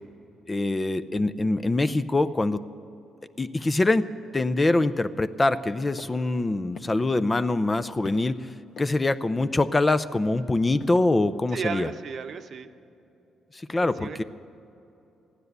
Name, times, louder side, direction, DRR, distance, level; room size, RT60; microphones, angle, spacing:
voice 1, 0.5-2.6 3.4-8.5 8.8-11.9 13.5-14.2, left 2 dB, 20° left, 12 dB, 0.5 m, -24 dB
sound 1, 6.0-6.1 6.4-6.5 6.8-7.2 7.5-8.2 8.8-9.1 9.4-9.7 10.1-11.0, left 4 dB, 60° left, 1.5 m, -42 dB
voice 2, 11.5-12.7 13.8-14.2, right 6 dB, 55° right, 9 dB, 0.8 m, -34 dB
15.0 x 10.5 x 8.1 m, 2.8 s
cardioid pair, 90°, 0 cm